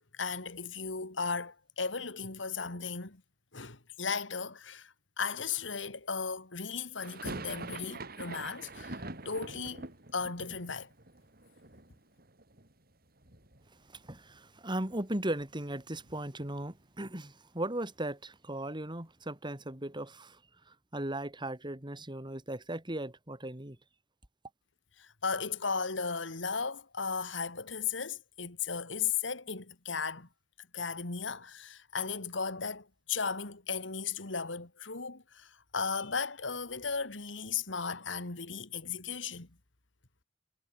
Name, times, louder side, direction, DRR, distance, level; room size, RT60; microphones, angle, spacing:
voice 1, 0.1-3.2 3.5-9.9 10.1-10.9 25.0-30.3 30.7-39.5, left 5 dB, 80° left, 2.5 m, -36 dB
sound 1, 7.0-12.9 13.2-14.0 14.3-14.4 14.7-16.8, right 2 dB, 55° right, 6.2 m, -45 dB
voice 2, 13.9-20.4 20.7-23.8, right 1 dB, 25° right, 3.2 m, -37 dB
head